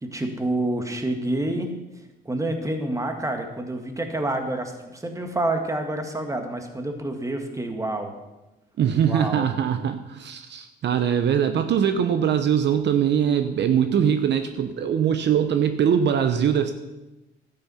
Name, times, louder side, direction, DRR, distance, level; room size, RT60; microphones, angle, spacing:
voice 1, 0.0-1.7 2.2-8.1 9.1-9.5, right 1 dB, 15° right, 5 dB, 1.9 m, -28 dB
voice 2, 8.8-16.7, right 8 dB, 60° right, 8 dB, 0.7 m, -22 dB
12.0 x 8.7 x 5.7 m, 1.0 s
cardioid pair, 90°, 20 cm